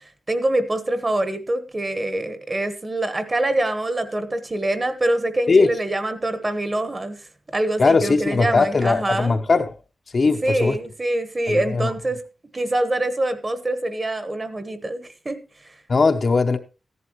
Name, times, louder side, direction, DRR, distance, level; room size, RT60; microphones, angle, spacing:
voice 1, 0.0-7.2 7.5-9.4 10.4-12.2 12.5-15.7, right 1 dB, 25° right, 1.1 m, -25 dB
voice 2, 7.8-9.7 10.1-10.8 11.5-11.9 15.9-16.6, left 4 dB, 40° left, 0.8 m, -19 dB
14.5 x 11.0 x 3.1 m
wide cardioid pair, 160°, 0 cm